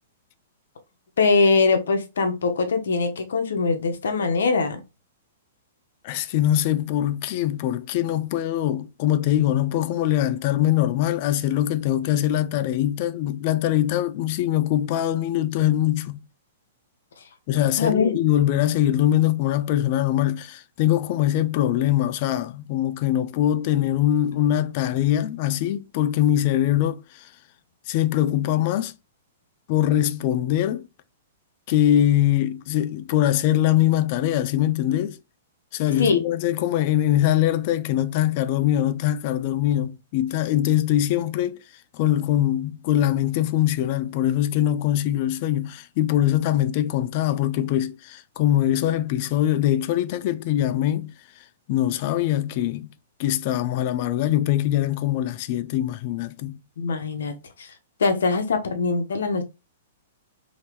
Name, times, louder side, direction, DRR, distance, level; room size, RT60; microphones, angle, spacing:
voice 1, 1.2-4.8 17.8-18.2 36.0-36.2 56.8-57.7 58.0-59.4, left 4 dB, 75° left, 0.8 m, -22 dB
voice 2, 6.0-16.2 17.5-27.2 27.9-28.9 29.7-30.9 31.7-35.2 35.7-41.6 41.9-51.1 51.7-52.9 53.2-56.6, left 12 dB, 50° left, 0.4 m, -22 dB
2.8 x 2.8 x 3.3 m
hypercardioid pair, 115°, 0 cm